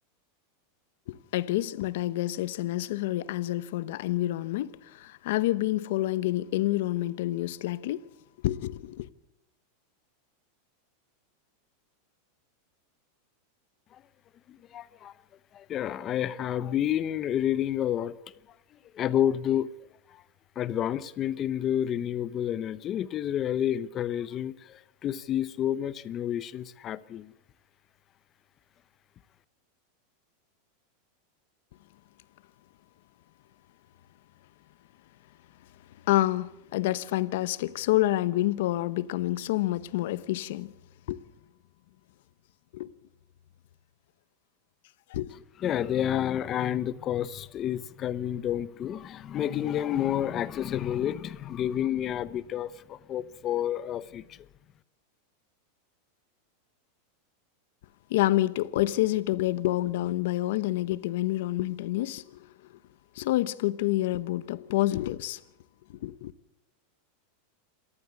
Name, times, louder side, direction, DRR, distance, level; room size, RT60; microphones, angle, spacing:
voice 1, 1.1-8.0 8.4-9.1 36.1-40.7 41.1-41.2 42.7-42.9 45.1-45.4 58.1-62.5 63.1-65.4 65.9-66.3, left 16 dB, 65° left, 1.0 m, -28 dB
voice 2, 14.5-15.1 15.5-18.1 18.9-19.7 20.1-20.2 20.6-27.3 45.6-54.4, left 10 dB, 30° left, 0.8 m, -29 dB
27.0 x 14.0 x 8.3 m
supercardioid pair, 150°, 0 cm